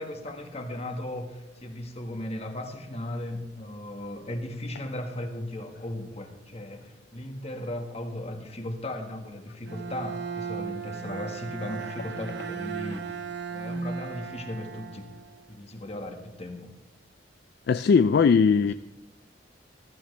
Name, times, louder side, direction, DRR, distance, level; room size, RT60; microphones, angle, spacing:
voice 1, 0.0-13.2 13.5-15.1 15.5-16.7 18.4-18.6, left 1 dB, 35° left, 5 dB, 1.6 m, -37 dB
Bowed string instrument, 9.6-15.6, right 5 dB, 65° right, 1.0 m, -36 dB
voice 2, 17.7-18.7, left 5 dB, 60° left, 12 dB, 0.3 m, -19 dB
15.5 x 14.5 x 3.3 m, 1.0 s
head